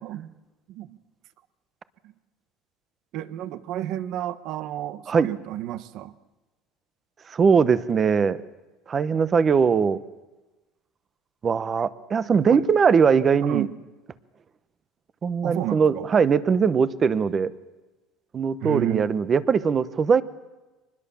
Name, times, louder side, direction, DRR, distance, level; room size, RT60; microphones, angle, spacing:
voice 1, 0.0-0.4 0.7-1.0 3.1-6.1 12.3-12.7 13.4-13.7 15.4-16.1 18.6-19.1, right 12 dB, 55° right, 14 dB, 1.2 m, -31 dB
voice 2, 7.3-8.4 8.9-10.0 11.4-13.7 15.2-17.5 18.3-20.2, right 6 dB, 25° right, 15 dB, 1.0 m, -20 dB
25.0 x 20.5 x 7.1 m, 1.1 s
cardioid pair, 150°, 0 cm